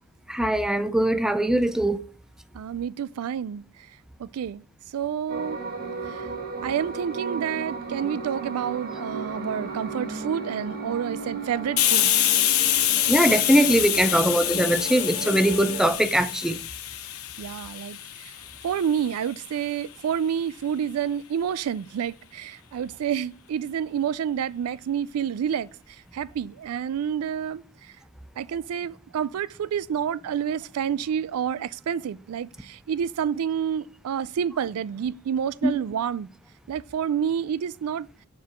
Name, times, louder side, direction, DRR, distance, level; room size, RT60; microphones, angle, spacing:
voice 1, 0.3-2.0 13.1-16.6 35.6-35.8, right 1 dB, 5° right, 0.4 m, -21 dB
voice 2, 2.5-3.6 4.2-4.6 4.9-5.6 6.1-6.3 6.6-12.2 17.4-18.3 18.6-25.7 26.1-27.6 28.4-36.3 36.7-38.1, right 8 dB, 90° right, 0.3 m, -29 dB
sound 1, 5.3-15.9, right 4 dB, 45° right, 1.5 m, -35 dB
Hiss, 11.8-19.2, left 12 dB, 80° left, 0.8 m, -26 dB
7.1 x 4.6 x 4.4 m
head